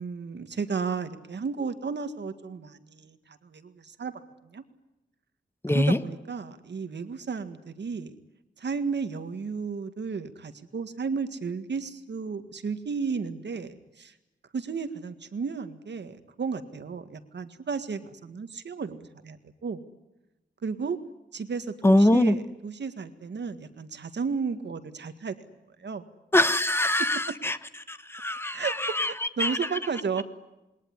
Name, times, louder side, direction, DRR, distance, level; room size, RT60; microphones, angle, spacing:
voice 1, 0.0-4.1 4.4-4.6 5.7-8.1 8.6-14.1 14.5-19.8 20.6-21.0 21.3-25.4 25.8-26.0 27.0-27.4 28.5-30.2, right 5 dB, 70° right, 9 dB, 1.9 m, -33 dB
voice 2, 5.6-6.0 21.8-22.3 26.3-27.6 27.9-29.1 29.4-29.6, left 1 dB, 10° left, 12 dB, 1.2 m, -23 dB
28.0 x 21.5 x 9.7 m, 0.97 s
wide cardioid pair, 160°, 19 cm